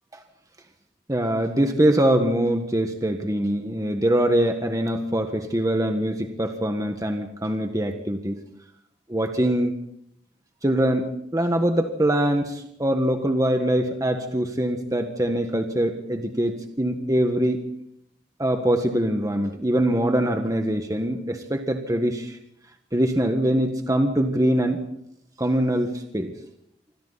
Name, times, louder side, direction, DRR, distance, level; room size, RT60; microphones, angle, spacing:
voice 1, 1.1-8.3 9.1-9.8 10.6-17.6 18.4-22.4 22.9-24.8 25.4-26.3, right 1 dB, 20° right, 5 dB, 1.6 m, -23 dB
27.5 x 25.5 x 4.2 m, 0.73 s
head